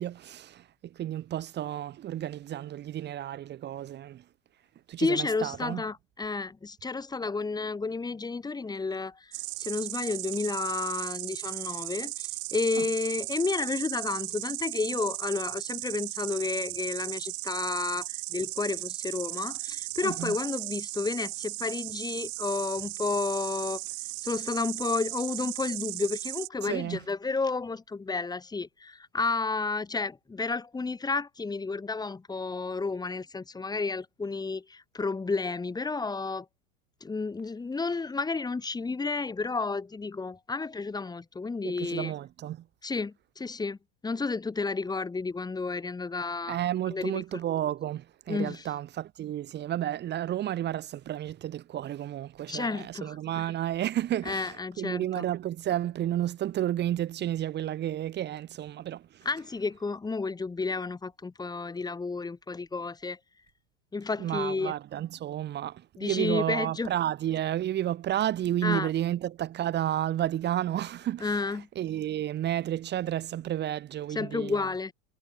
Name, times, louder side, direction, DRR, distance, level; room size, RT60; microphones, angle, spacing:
voice 1, 0.0-4.2 4.9-5.8 12.8-12.9 20.0-20.4 26.6-27.0 41.6-42.6 46.5-59.3 64.2-74.6, right 12 dB, 35° right, 2.6 m, -31 dB
voice 2, 5.0-9.3 9.6-23.8 24.2-36.5 37.0-42.1 42.8-43.8 44.0-46.6 46.9-47.2 48.3-48.6 52.5-53.4 54.2-55.2 59.2-63.2 63.9-64.7 66.0-66.9 68.6-68.9 71.2-71.7 74.1-74.9, left 4 dB, 15° left, 3.3 m, -31 dB
Insect, 9.3-26.5, right 29 dB, 55° right, 1.3 m, -36 dB
supercardioid pair, 115°, 29 cm